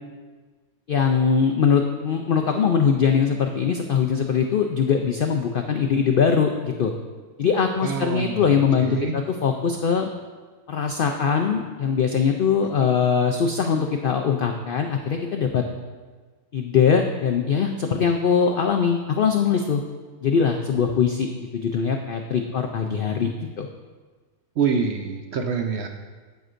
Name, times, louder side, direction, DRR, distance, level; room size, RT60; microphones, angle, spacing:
voice 1, 0.9-6.9 7.4-10.1 10.7-15.6 16.5-19.8 20.2-23.3 23.6-23.7, left 6 dB, 90° left, 4 dB, 0.4 m, -22 dB
voice 2, 7.8-8.5 8.8-9.1 12.8-12.9 24.6-25.9, right 6 dB, 60° right, 4 dB, 0.7 m, -26 dB
9.3 x 8.0 x 2.5 m, 1.4 s
omnidirectional pair, 1.5 m